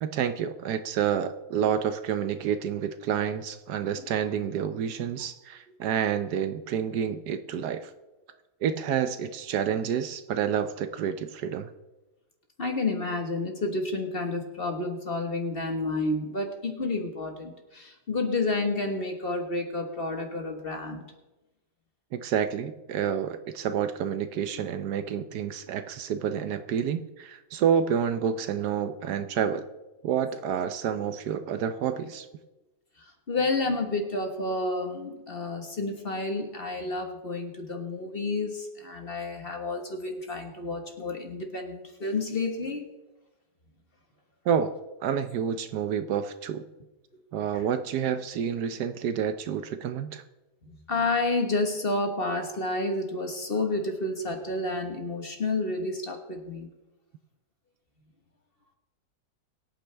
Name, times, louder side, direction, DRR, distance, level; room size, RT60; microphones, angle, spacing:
voice 1, 0.0-7.9 8.6-11.7 22.1-29.7 30.0-32.3 44.4-44.7 45.0-46.6 47.3-50.2, right 8 dB, 70° right, 10 dB, 1.2 m, -29 dB
voice 2, 12.6-21.1 33.0-42.8 47.5-47.6 50.9-56.7, left 2 dB, 35° left, 4 dB, 1.5 m, -30 dB
23.0 x 8.8 x 3.4 m, 1.1 s
omnidirectional pair, 1.9 m